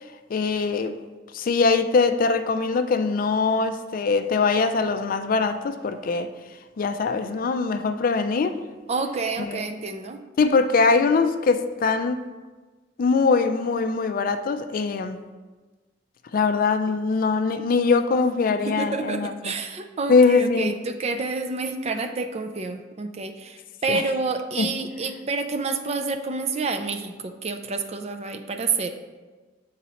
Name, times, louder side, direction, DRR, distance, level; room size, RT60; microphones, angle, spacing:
voice 1, 0.3-0.9 1.3-6.3 6.8-8.6 9.4-9.7 10.4-12.2 13.0-15.2 16.3-19.5 20.1-20.7 23.9-24.0 24.6-24.7, left 4 dB, 50° left, 9 dB, 0.4 m, -22 dB
voice 2, 8.9-10.2 18.7-28.9, right 4 dB, 35° right, 7 dB, 0.4 m, -29 dB
7.5 x 4.0 x 4.2 m, 1.3 s
head